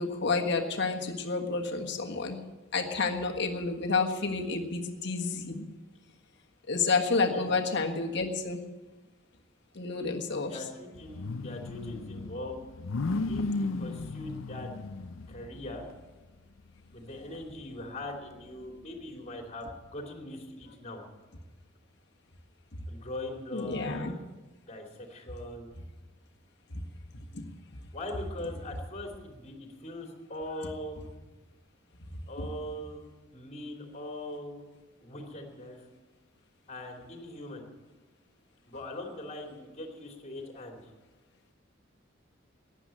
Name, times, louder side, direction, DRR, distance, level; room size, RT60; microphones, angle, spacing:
voice 1, 0.0-2.4 2.7-5.6 6.7-8.7 9.7-10.5 23.5-24.1 27.3-27.4 32.4-32.5, left 4 dB, 60° left, 2 dB, 1.6 m, -30 dB
voice 2, 10.5-12.6 13.3-14.7 15.3-15.9 16.9-21.1 22.9-24.2 24.7-25.7 27.9-31.0 32.3-33.0 33.3-34.6 35.0-35.8 36.7-37.7 38.7-40.9, left 1 dB, 35° left, 2 dB, 2.8 m, -41 dB
sound 1, 10.9-16.0 16.6-16.7 17.1-18.8, left 3 dB, 80° left, 0.6 m, -35 dB
15.0 x 10.0 x 8.7 m, 1.2 s
head